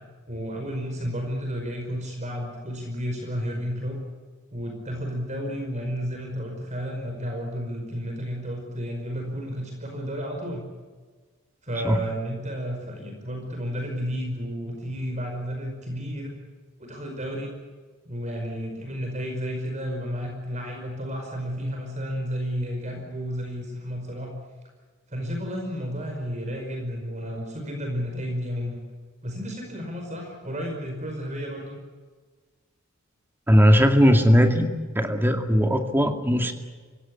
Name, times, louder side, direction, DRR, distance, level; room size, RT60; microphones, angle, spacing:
voice 1, 0.3-4.0 4.5-10.6 11.6-16.4 16.8-17.5 18.1-24.3 25.1-28.8 29.2-31.8, equal, 35° right, 2 dB, 5.2 m, -32 dB
voice 2, 33.5-34.7 35.0-36.5, equal, 10° right, 5 dB, 2.2 m, -18 dB
25.5 x 16.5 x 9.8 m, 1.4 s
head